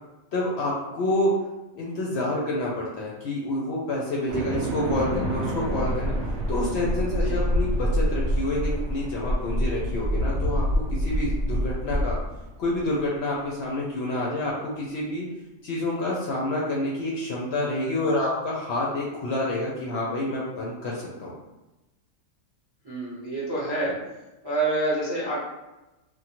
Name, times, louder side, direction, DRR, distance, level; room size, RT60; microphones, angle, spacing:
voice 1, 0.3-1.3 1.7-6.1 6.5-12.2 12.6-15.3 15.6-21.3, left 1 dB, 65° left, -4 dB, 0.7 m, -28 dB
sound 1, 4.3-12.8, equal, 65° right, 0.8 m, -26 dB
voice 2, 22.8-23.9 24.4-25.4, right 2 dB, 25° right, -8 dB, 0.5 m, -27 dB
2.9 x 2.1 x 2.8 m, 1.0 s
omnidirectional pair, 1.4 m